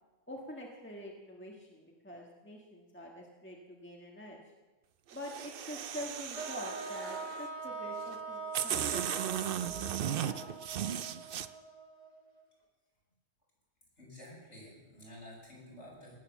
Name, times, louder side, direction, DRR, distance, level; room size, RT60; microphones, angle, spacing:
voice 1, 0.3-4.4 5.1-9.4 9.6-10.5, equal, 10° left, -1 dB, 1.5 m, -46 dB
sound 1, 5.1-7.5 8.1-8.2 8.5-11.5, right 9 dB, 60° right, 0.7 m, -36 dB
sound 2, 6.3-12.4, right 3 dB, 35° left, 1.7 m, -43 dB
voice 2, 14.0-16.1, left 1 dB, 75° left, -5 dB, 7.2 m, -51 dB
18.5 x 8.8 x 7.1 m, 1.2 s
omnidirectional pair, 1.2 m